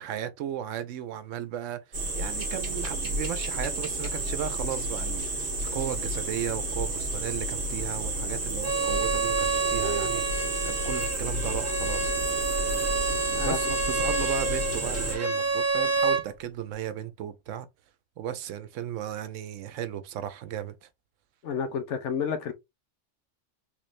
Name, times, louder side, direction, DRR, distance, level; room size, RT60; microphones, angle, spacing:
voice 1, 0.0-12.1 13.4-17.7 18.2-20.9, right 10 dB, 90° right, 1.0 m, -35 dB
sound 1, 1.9-15.2, right 1 dB, 35° right, 1.1 m, -31 dB
Bowed string instrument, 8.6-16.2, right 3 dB, 15° right, 0.7 m, -28 dB
voice 2, 21.4-22.5, left 6 dB, 75° left, 1.0 m, -30 dB
3.7 x 3.2 x 2.5 m
omnidirectional pair, 1.3 m